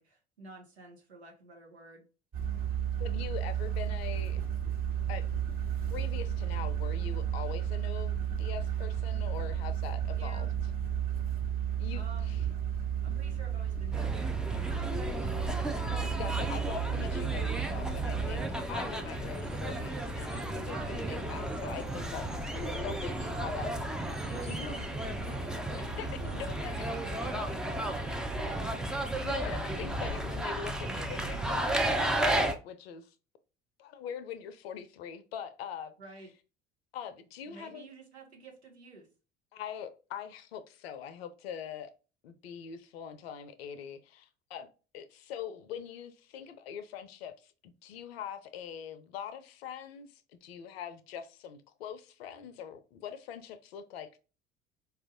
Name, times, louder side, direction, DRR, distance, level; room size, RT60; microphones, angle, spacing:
voice 1, 0.0-2.0 10.1-10.5 11.9-12.5 13.0-15.2 20.6-21.1 24.2-28.7 36.0-36.3 37.4-39.1, right 2 dB, 85° right, 1.0 m, -51 dB
sound 1, 2.3-18.4, right 9 dB, 45° right, 1.2 m, -33 dB
voice 2, 3.0-4.4 5.1-5.3 5.9-10.5 11.8-12.4 16.2-22.3 22.5-23.9 24.4-24.8 25.7-26.9 29.2-33.1 33.8-35.9 36.9-37.9 39.5-41.9 42.2-44.7 44.9-54.2, left 8 dB, 70° left, 0.5 m, -43 dB
sound 2, 13.9-32.5, right 1 dB, ahead, 0.3 m, -33 dB
4.4 x 2.4 x 2.5 m
figure-of-eight pair, 60°, 32 cm